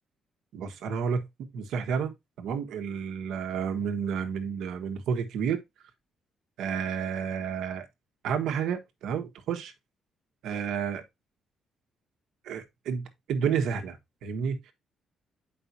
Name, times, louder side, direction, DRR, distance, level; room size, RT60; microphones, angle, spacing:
voice 1, 0.5-5.6 6.6-7.9 8.2-9.7 10.4-11.0 12.4-14.7, right 7 dB, 85° right, 1.4 m, -31 dB
8.2 x 5.4 x 2.8 m
cardioid pair, 90°, 0 cm